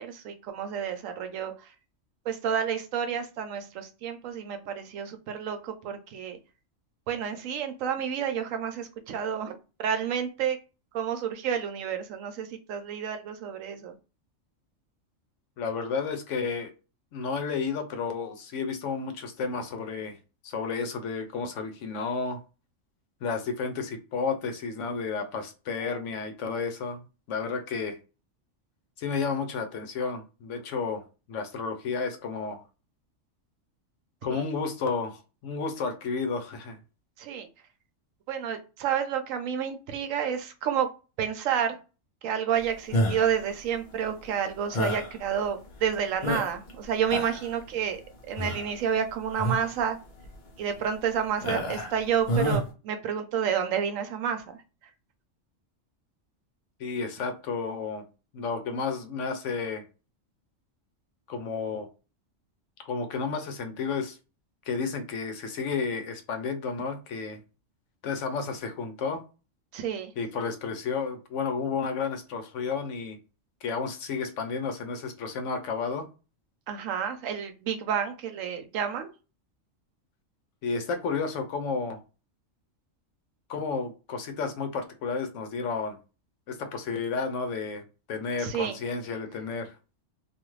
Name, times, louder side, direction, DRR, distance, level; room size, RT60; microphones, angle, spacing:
voice 1, 0.0-1.7 2.3-6.4 7.1-10.6 10.9-13.9 34.3-34.4 37.2-37.5 38.3-40.9 41.2-41.8 42.2-48.0 48.3-50.0 50.6-54.6 69.7-70.1 76.7-79.1 88.4-88.8, right 8 dB, 85° right, 1.0 m, -30 dB
voice 2, 15.6-16.7 17.1-20.2 20.4-22.4 23.2-27.0 27.3-28.0 29.0-32.6 34.2-36.8 56.8-58.0 58.3-59.8 61.3-61.9 62.9-64.2 64.7-67.4 68.0-69.2 70.2-73.2 73.6-76.1 80.6-82.0 83.5-86.0 86.5-89.7, left 5 dB, 75° left, 0.9 m, -32 dB
sound 1, 42.9-43.4 44.7-45.1 45.7-45.8 46.2-46.7 47.0-47.5 48.4-48.7 49.3-49.7 50.2-50.3 51.4-52.0 52.3-52.6, equal, 50° left, 0.7 m, -28 dB
2.5 x 2.4 x 3.0 m
omnidirectional pair, 1.3 m